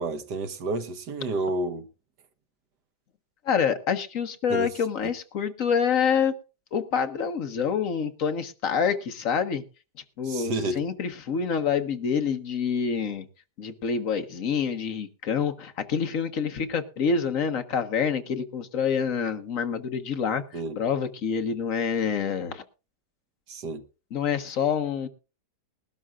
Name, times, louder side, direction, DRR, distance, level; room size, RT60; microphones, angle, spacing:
voice 1, 0.0-1.9 4.5-4.7 5.0-5.1 10.2-10.8 20.5-20.8 23.5-23.8, right 2 dB, 70° right, 1.9 m, -30 dB
voice 2, 3.4-6.3 6.7-9.6 10.2-13.3 13.6-20.4 20.8-22.6 24.1-25.1, left 6 dB, 50° left, 1.4 m, -27 dB
20.5 x 12.5 x 2.4 m
omnidirectional pair, 1.9 m